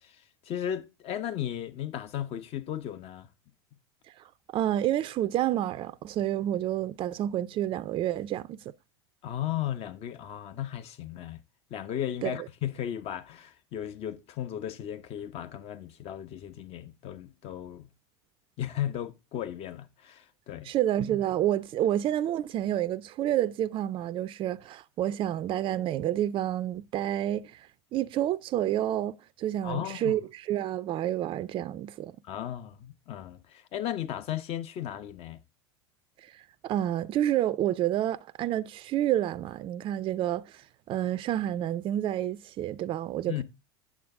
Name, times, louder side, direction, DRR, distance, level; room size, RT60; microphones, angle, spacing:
voice 1, 0.0-3.3 9.2-11.4 11.7-17.9 18.6-20.7 29.6-30.2 32.2-35.4 43.3-43.4, left 11 dB, 45° left, 1.0 m, -35 dB
voice 2, 4.5-8.6 12.2-12.3 20.6-32.1 36.3-40.6 40.9-43.4, right 12 dB, 35° right, 0.5 m, -29 dB
8.6 x 7.2 x 3.6 m
hypercardioid pair, 80°, 14 cm